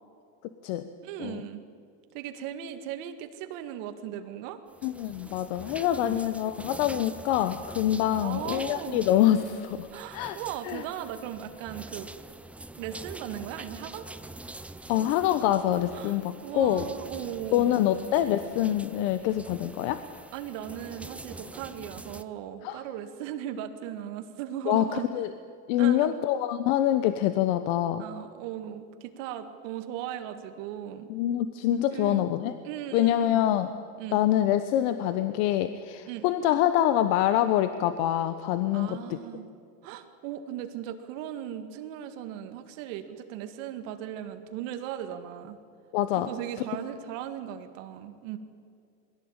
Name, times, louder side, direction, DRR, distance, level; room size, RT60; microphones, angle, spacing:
voice 1, 1.0-1.6 2.1-4.6 5.9-6.2 8.1-9.1 9.9-12.1 12.7-14.1 15.9-17.9 20.3-25.1 25.8-26.2 28.0-31.1 31.9-32.3 32.6-33.5 34.0-34.2 36.1-36.3 38.7-39.5 39.8-45.6 46.2-48.4, right 10 dB, 75° right, 7 dB, 2.0 m, -38 dB
sound 1, 4.7-22.2, right 2 dB, 5° right, 0.5 m, -45 dB
voice 2, 4.8-9.9 10.1-10.4 10.6-10.8 14.9-16.9 17.5-20.0 22.6-22.8 24.7-25.3 25.7-28.0 31.1-32.5 32.9-33.7 34.1-39.2 45.9-46.3, left 12 dB, 75° left, 11 dB, 1.1 m, -25 dB
22.0 x 16.5 x 8.9 m, 2.4 s
cardioid pair, 140°, 38 cm